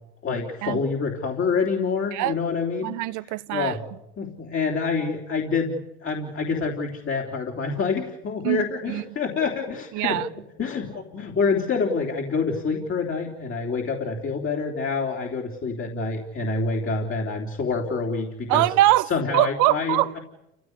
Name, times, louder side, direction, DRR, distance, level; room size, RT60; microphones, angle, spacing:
voice 1, 0.2-3.0 3.5-3.8 4.2-10.2 10.6-18.7 19.1-20.2, left 4 dB, 40° left, 3.5 m, -27 dB
voice 2, 2.8-3.8 8.4-9.0 9.9-10.3 18.5-20.2, right 16 dB, 70° right, 1.1 m, -23 dB
29.0 x 16.0 x 9.8 m
supercardioid pair, 75°, 31 cm